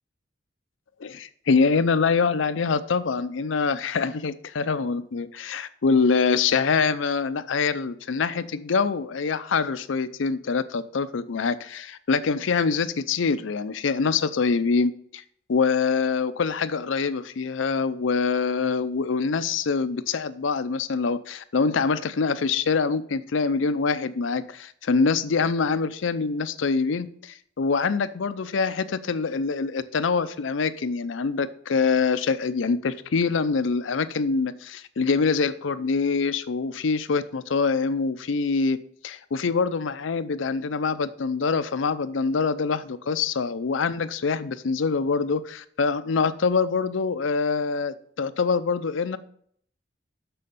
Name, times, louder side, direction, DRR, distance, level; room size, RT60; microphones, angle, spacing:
voice 1, 1.0-15.2 15.5-38.8 39.0-49.2, left 5 dB, 90° left, 13 dB, 0.5 m, -25 dB
6.8 x 6.3 x 5.3 m, 0.63 s
head